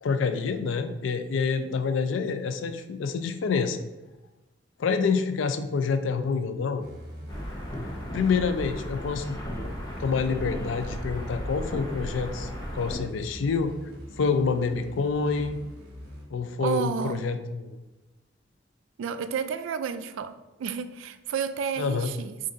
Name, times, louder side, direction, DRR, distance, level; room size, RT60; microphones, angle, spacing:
voice 1, 0.0-3.8 4.8-6.8 8.1-9.4 10.0-13.7 14.2-15.6 16.3-17.8 21.8-22.1, left 5 dB, 75° left, 0.4 m, -27 dB
sound 1, 6.8-16.2, equal, 55° right, 1.2 m, -44 dB
sound 2, 7.3-13.0, equal, 20° left, 0.8 m, -35 dB
voice 2, 16.6-17.2 19.0-22.4, right 6 dB, 85° right, 0.3 m, -31 dB
3.8 x 2.5 x 3.8 m
head